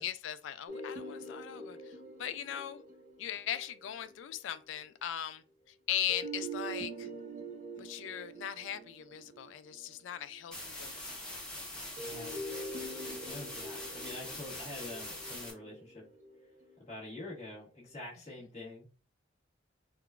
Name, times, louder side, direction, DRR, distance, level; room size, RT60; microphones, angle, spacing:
voice 1, 0.0-2.8 3.2-7.1 7.8-11.2, left 10 dB, 75° left, 0.3 m, -39 dB
sound 1, 0.7-4.5 6.1-10.6 12.0-17.2, right 2 dB, 45° right, 0.7 m, -45 dB
sound 2, 10.5-15.5, left 1 dB, 5° left, 0.8 m, -43 dB
voice 2, 12.0-12.5 13.3-16.0 16.9-18.9, left 2 dB, 35° left, 1.2 m, -46 dB
3.6 x 2.3 x 2.3 m
head